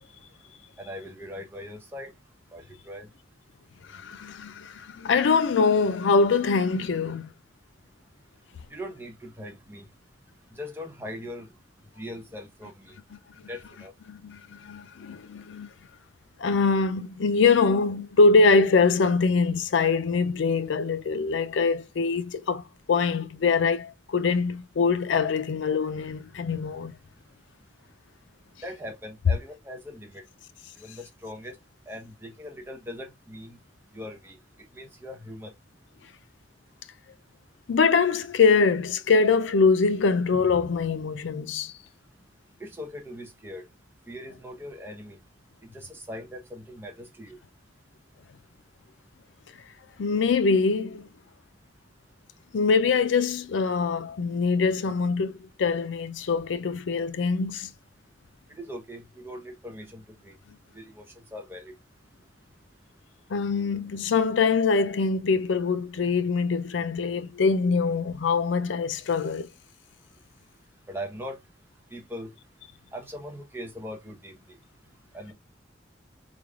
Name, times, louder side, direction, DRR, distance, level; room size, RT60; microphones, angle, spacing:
voice 1, 0.8-2.2 2.5-3.1 8.7-9.9 10.5-11.5 12.0-12.9 13.5-13.9 28.6-30.2 30.8-31.6 31.9-33.6 33.9-34.4 34.7-35.5 42.6-43.7 44.1-45.2 45.6-47.4 58.6-60.3 60.7-61.7 70.9-71.4 71.9-72.3 72.9-74.6 75.1-75.3, equal, 10° right, 0.8 m, -40 dB
voice 2, 3.9-7.3 14.1-15.7 16.4-26.9 37.7-41.7 50.0-51.0 52.5-57.7 63.3-69.5, left 4 dB, 90° left, 0.4 m, -23 dB
3.8 x 3.4 x 2.4 m
head